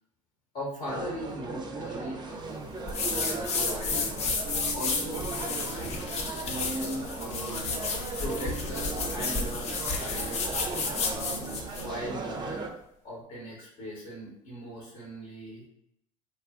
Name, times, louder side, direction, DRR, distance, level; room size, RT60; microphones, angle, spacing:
voice 1, 0.5-2.7 3.0-4.3 4.7-5.9 6.5-7.6 8.2-12.7 13.0-15.7, equal, 55° left, -4 dB, 1.0 m, -39 dB
sound 1, 0.9-12.7, right 3 dB, 25° right, 0.4 m, -37 dB
sound 2, 2.9-11.9, left 4 dB, 40° left, 0.5 m, -32 dB
sound 3, 4.4-12.1, right 5 dB, 80° right, 0.4 m, -45 dB
3.1 x 2.3 x 2.4 m, 0.77 s
hypercardioid pair, 65°, 17 cm